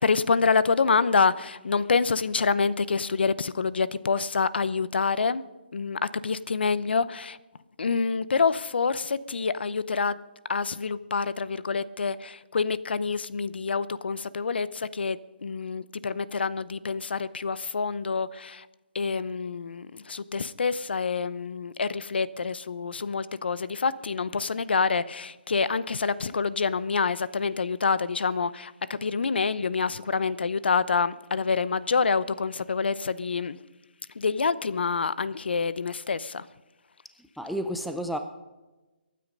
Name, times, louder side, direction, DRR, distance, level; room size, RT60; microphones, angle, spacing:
voice 1, 0.0-5.4 5.7-7.4 7.8-10.2 10.5-18.7 18.9-33.6 34.1-36.5, left 5 dB, 75° left, 17 dB, 0.8 m, -27 dB
voice 2, 37.4-38.2, equal, ahead, 6 dB, 0.4 m, -31 dB
24.0 x 9.4 x 5.3 m, 1.1 s
hypercardioid pair, 170°, 6 cm